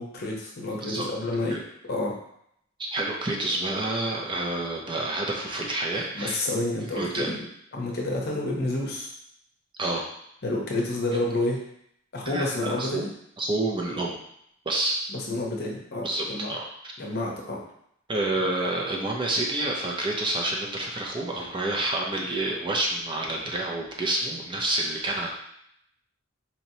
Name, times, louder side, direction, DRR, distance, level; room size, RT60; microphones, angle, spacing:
voice 1, 0.0-1.6 1.8-2.1 6.1-7.4 7.7-9.1 10.4-11.6 12.1-13.1 15.1-16.5 17.0-17.6, left 2 dB, 50° left, -1 dB, 0.8 m, -29 dB
voice 2, 2.8-6.4 7.0-7.3 9.8-10.0 12.2-13.0 13.4-14.2 14.7-14.9 16.0-16.7 18.1-25.3, right 2 dB, 25° right, -1 dB, 0.5 m, -28 dB
4.2 x 2.9 x 2.8 m, 0.73 s
head